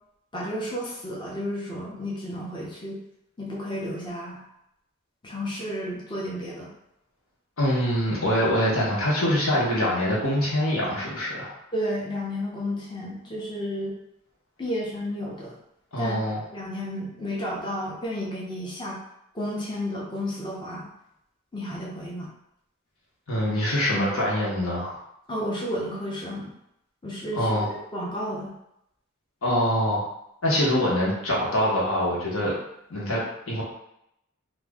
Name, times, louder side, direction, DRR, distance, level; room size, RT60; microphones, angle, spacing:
voice 1, 0.3-3.0 3.4-4.4 5.2-6.7 11.7-13.9 14.6-15.5 16.0-16.2 16.5-19.0 19.3-20.9 21.5-22.3 25.3-26.5 27.0-28.5, equal, 20° left, -5 dB, 0.6 m, -32 dB
voice 2, 7.6-11.5 15.9-16.4 23.3-25.0 27.3-27.7 29.4-30.0 30.4-32.5 32.9-33.6, equal, 75° left, -5 dB, 1.1 m, -24 dB
2.8 x 2.5 x 3.5 m, 0.81 s
head